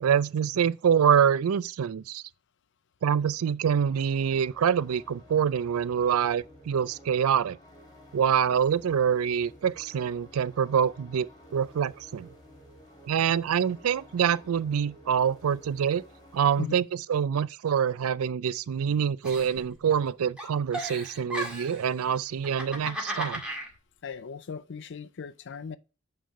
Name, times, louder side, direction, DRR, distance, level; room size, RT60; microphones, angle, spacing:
voice 1, 0.0-2.2 3.0-7.6 8.1-12.3 13.0-16.0 16.3-23.4, right 8 dB, 80° right, 0.4 m, -25 dB
sound 1, 3.6-16.7, equal, 20° left, 1.9 m, -53 dB
Giggle, 19.2-20.1 20.4-21.8 22.4-23.7, equal, 5° right, 1.9 m, -35 dB
voice 2, 24.0-25.8, left 6 dB, 60° left, 0.5 m, -37 dB
9.2 x 3.3 x 5.2 m
head